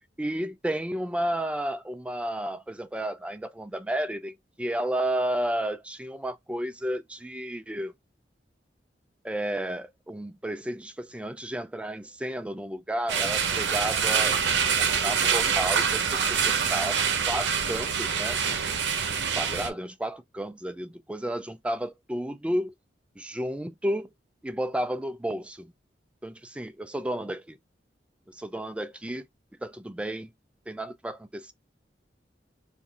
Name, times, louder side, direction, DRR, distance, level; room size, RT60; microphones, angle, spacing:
voice 1, 0.2-7.9 9.2-14.4 14.8-18.6 19.3-22.7 23.2-24.1 24.4-25.7 26.2-27.6 28.3-29.2 29.6-30.3 30.7-31.5, right 1 dB, 5° right, 0.3 m, -32 dB
sound 1, 13.1-19.7, right 6 dB, 75° right, 0.7 m, -25 dB
2.6 x 2.4 x 4.0 m
head